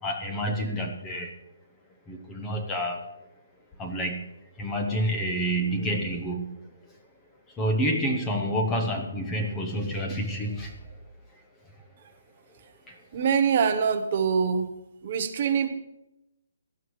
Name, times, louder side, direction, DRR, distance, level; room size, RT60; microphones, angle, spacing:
voice 1, 0.0-1.3 2.1-3.0 3.8-6.6 7.5-11.0 12.9-13.0, equal, 10° left, 2 dB, 0.8 m, -29 dB
voice 2, 13.1-14.7 15.0-15.7, right 6 dB, 30° right, 8 dB, 0.9 m, -24 dB
17.5 x 12.0 x 3.2 m, 0.87 s
hypercardioid pair, 175°, 0 cm